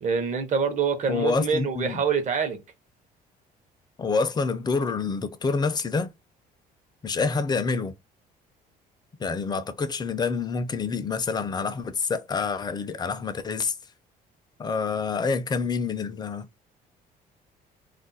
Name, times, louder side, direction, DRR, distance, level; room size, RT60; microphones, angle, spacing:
voice 1, 0.0-2.6, right 6 dB, 45° right, 0.8 m, -25 dB
voice 2, 1.1-2.0 4.0-6.1 7.0-7.9 9.2-13.7 14.6-16.7, left 4 dB, 25° left, 0.5 m, -27 dB
2.5 x 2.1 x 3.9 m
cardioid pair, 110°, 17 cm